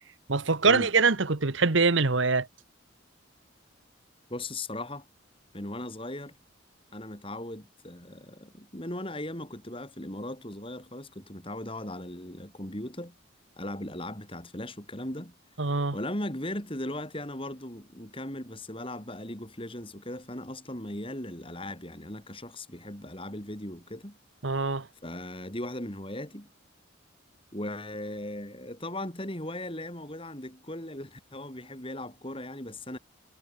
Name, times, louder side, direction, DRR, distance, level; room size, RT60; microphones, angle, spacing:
voice 1, 0.3-2.5 15.6-16.0 24.4-24.9, right 4 dB, 70° right, 1.3 m, -24 dB
voice 2, 4.3-5.1 5.5-6.4 6.9-13.2 13.6-15.3 15.9-24.2 25.0-26.5 27.5-33.0, left 1 dB, 25° left, 5.3 m, -38 dB
head